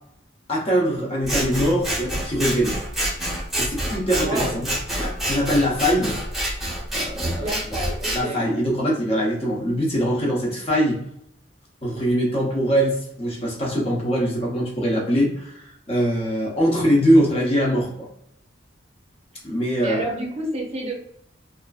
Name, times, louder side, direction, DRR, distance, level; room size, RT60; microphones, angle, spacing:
voice 1, 0.5-2.8 3.6-4.7 5.0-6.2 6.9-7.8 8.1-11.0 11.8-18.1 19.4-20.1, equal, 30° left, -3 dB, 0.9 m, -22 dB
Scissors, 1.2-8.2, right 1 dB, ahead, 0.9 m, -27 dB
voice 2, 4.2-4.6 7.4-8.5 19.8-20.9, right 1 dB, 35° right, -1 dB, 0.6 m, -29 dB
2.8 x 2.5 x 2.3 m, 0.73 s
head